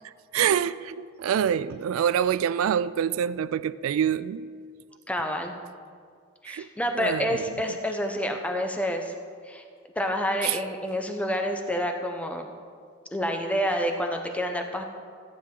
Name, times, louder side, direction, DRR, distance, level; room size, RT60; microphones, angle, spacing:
voice 1, 0.3-4.4 6.5-6.7 6.9-7.4 10.4-10.6, right 9 dB, 90° right, 0.3 m, -26 dB
voice 2, 5.1-5.6 6.4-9.2 9.5-9.6 10.0-12.5 13.1-14.8, equal, 5° left, 0.9 m, -28 dB
14.0 x 9.4 x 3.8 m
head